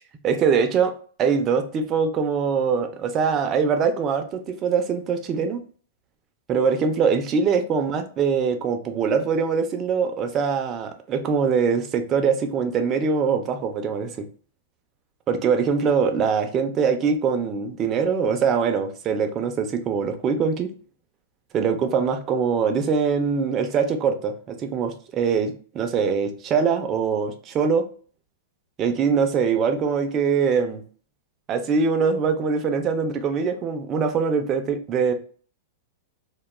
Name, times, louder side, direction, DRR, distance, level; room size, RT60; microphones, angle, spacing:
voice 1, 0.2-0.9 1.2-5.6 6.5-14.2 15.3-20.7 21.5-27.9 28.8-30.8 31.5-35.1, right 6 dB, 20° right, 6 dB, 0.3 m, -23 dB
2.2 x 2.1 x 3.0 m, 0.43 s
supercardioid pair, 165°, 0 cm